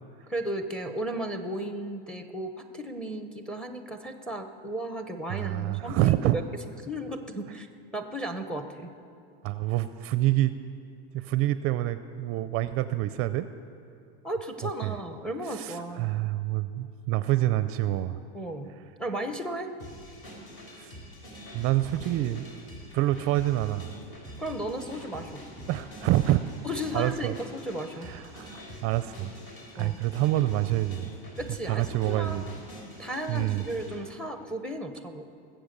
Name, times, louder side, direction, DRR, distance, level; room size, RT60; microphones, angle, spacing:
voice 1, 0.3-6.4 6.8-7.7 7.9-8.9 14.2-16.2 18.3-18.7 19.0-19.7 24.4-25.4 26.6-28.1 29.7-30.0 31.4-32.6 33.0-35.3, right 1 dB, 5° left, 7 dB, 0.8 m, -35 dB
voice 2, 5.3-6.4 9.4-10.5 11.1-13.5 14.8-14.9 15.5-18.2 20.7-20.9 21.5-22.4 22.9-23.9 25.7-26.4 26.9-27.3 28.0-29.3 29.7-31.1 31.6-32.4 33.3-33.6, right 15 dB, 45° right, 13 dB, 0.5 m, -27 dB
sound 1, 19.8-34.0, equal, 45° left, 3.9 m, -45 dB
20.5 x 7.8 x 6.7 m, 2.4 s
supercardioid pair, 135°, 31 cm